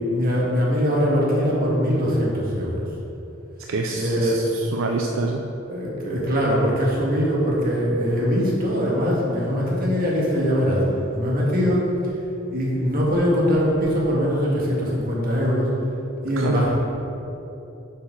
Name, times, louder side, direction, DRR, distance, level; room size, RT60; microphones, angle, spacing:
voice 1, 0.0-2.8 3.9-4.4 4.8-5.0 5.7-10.9 11.1-11.9 12.5-15.7 16.2-16.7, equal, 45° right, -4 dB, 1.9 m, -22 dB
voice 2, 3.7-5.4 16.4-16.7, right 3 dB, 75° right, 2 dB, 0.5 m, -26 dB
7.3 x 4.6 x 6.2 m, 3.0 s
head